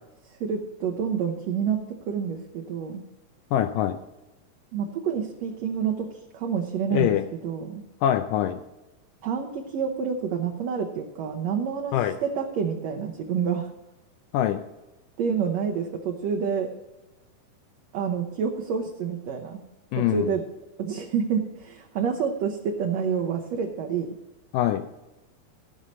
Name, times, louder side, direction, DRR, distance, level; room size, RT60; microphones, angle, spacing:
voice 1, 0.3-3.0 4.7-7.2 7.4-7.8 9.2-13.7 15.2-16.7 17.9-19.6 20.0-20.4 20.8-24.1, right 6 dB, 70° right, 1 dB, 1.8 m, -28 dB
voice 2, 3.5-4.0 6.9-7.2 8.0-8.6 11.9-12.2 14.3-14.6 19.9-20.3 24.5-24.8, left 11 dB, 80° left, 7 dB, 2.2 m, -23 dB
15.5 x 5.5 x 6.3 m, 1.0 s
omnidirectional pair, 3.9 m